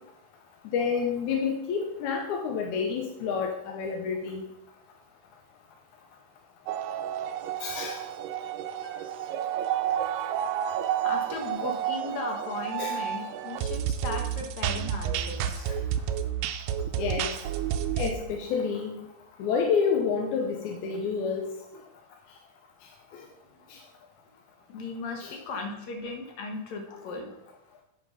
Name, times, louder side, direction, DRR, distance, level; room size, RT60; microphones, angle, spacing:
voice 1, 0.6-4.4 7.6-8.0 12.8-13.0 15.7-15.8 17.0-17.4 18.0-19.1 19.4-21.5 23.1-23.2 23.7-23.8 25.2-25.4 26.9-27.1, left 6 dB, 75° left, 2 dB, 1.9 m, -29 dB
sound 1, 6.7-18.1, right 10 dB, 80° right, 2.1 m, -30 dB
voice 2, 8.7-9.1 11.0-15.7 16.1-16.2 23.5-23.6 24.7-27.3, left 3 dB, 60° left, 3 dB, 2.4 m, -37 dB
8.1 x 6.2 x 5.6 m, 0.85 s
omnidirectional pair, 4.2 m